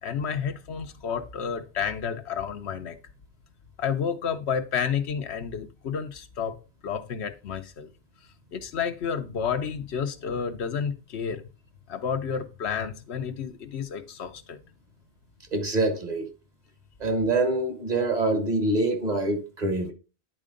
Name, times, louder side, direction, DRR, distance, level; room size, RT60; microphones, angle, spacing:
voice 1, 0.0-3.0 3.8-6.6 6.8-7.9 8.5-11.4 11.9-14.6, left 7 dB, 80° left, 1.1 m, -30 dB
voice 2, 15.5-16.3 17.0-19.9, right 2 dB, 40° right, 1.4 m, -25 dB
10.0 x 4.4 x 3.8 m
omnidirectional pair, 1.1 m